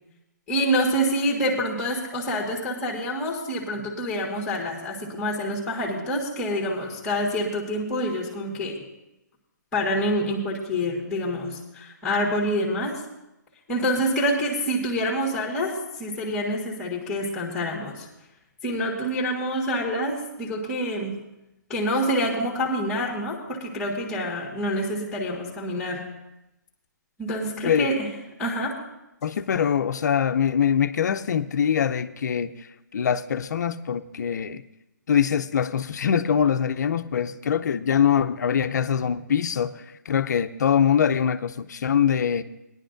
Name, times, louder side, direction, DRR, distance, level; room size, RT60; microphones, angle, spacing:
voice 1, 0.5-8.8 9.7-13.0 13.7-15.7 16.0-18.1 18.6-21.2 21.7-26.1 27.2-28.1 28.4-28.8, equal, 10° left, 1.7 m, -27 dB
voice 2, 29.2-32.5 32.9-34.6 35.1-42.4, left 8 dB, 65° left, 0.6 m, -23 dB
18.5 x 10.5 x 2.6 m
hypercardioid pair, 150°, 10 cm